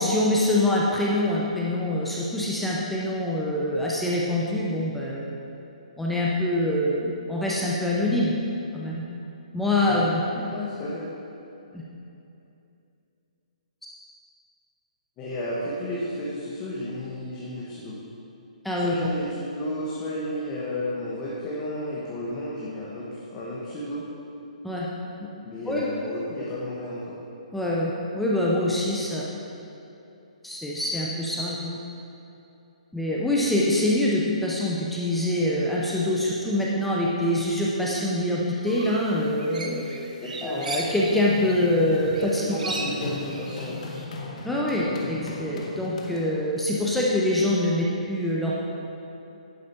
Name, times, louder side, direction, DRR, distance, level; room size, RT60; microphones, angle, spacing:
voice 1, 0.0-5.2 6.0-8.3 8.7-9.0 9.5-10.4 11.7-11.8 18.6-18.9 24.6-24.9 25.7-25.9 27.5-29.2 30.4-31.8 32.9-39.8 40.4-42.7 44.4-48.6, left 1 dB, 5° left, -5 dB, 0.7 m, -25 dB
voice 2, 10.5-11.0 15.2-18.0 18.8-23.0 23.3-24.0 25.4-27.2 40.2-40.7 42.2-44.0, left 1 dB, 20° left, -7 dB, 1.2 m, -32 dB
sound 1, 38.7-41.8 42.0-44.0, right 3 dB, 90° right, 1.1 m, -37 dB
Run, 40.2-46.6, left 3 dB, 65° left, 1.1 m, -38 dB
11.0 x 4.9 x 4.4 m, 2.8 s
hypercardioid pair, 155°, 4 cm